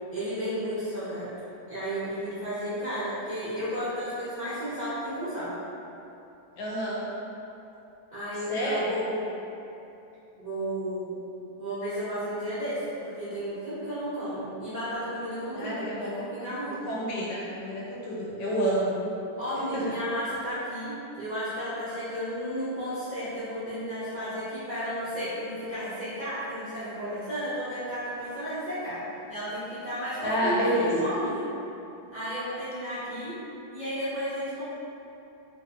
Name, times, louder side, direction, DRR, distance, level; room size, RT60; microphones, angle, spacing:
voice 1, 0.1-1.3 1.7-5.5 8.1-9.3 10.4-11.1 11.6-16.8 19.4-29.0 29.3-31.4 32.1-33.4 33.7-34.6, equal, 55° right, -15 dB, 0.4 m, -33 dB
voice 2, 6.6-7.0 8.5-8.9 15.5-16.2 16.9-19.0 19.7-20.0 30.2-30.9, equal, 90° left, -6 dB, 1.4 m, -29 dB
3.1 x 2.7 x 2.5 m, 2.9 s
omnidirectional pair, 1.8 m